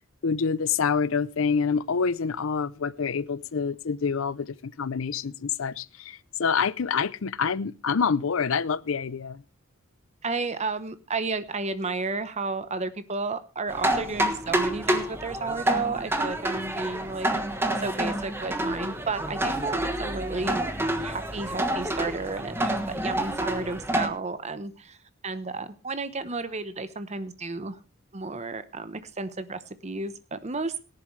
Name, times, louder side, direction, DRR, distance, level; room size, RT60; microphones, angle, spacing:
voice 1, 0.2-9.4, left 5 dB, 70° left, 0.6 m, -27 dB
voice 2, 10.2-17.3 17.8-20.6 21.0-25.0 25.2-27.8 28.1-30.8, right 3 dB, 35° right, 1.0 m, -32 dB
sound 1, 13.7-24.1, right 1 dB, 10° right, 1.3 m, -28 dB
17.5 x 11.0 x 3.2 m
head